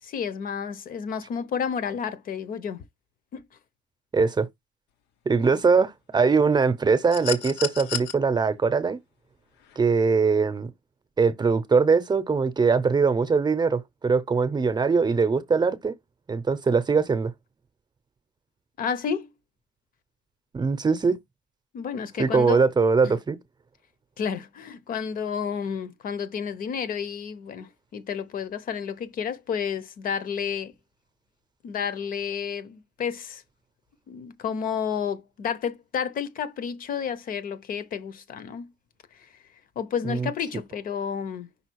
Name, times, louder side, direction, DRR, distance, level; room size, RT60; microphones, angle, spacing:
voice 1, 0.0-2.8 3.3-3.4 18.8-19.3 21.7-22.6 23.0-23.2 24.2-30.7 31.6-33.4 34.1-38.7 39.8-41.5, left 7 dB, 55° left, 1.0 m, -31 dB
voice 2, 4.1-4.5 5.3-9.0 9.8-10.7 11.2-15.9 16.3-17.3 20.5-21.2 22.2-23.4 40.0-40.3, right 5 dB, 25° right, 0.8 m, -22 dB
sound 1, 7.1-8.1 9.6-9.8, left 9 dB, 85° left, 1.0 m, -31 dB
5.7 x 3.8 x 4.7 m
cardioid pair, 110°, 17 cm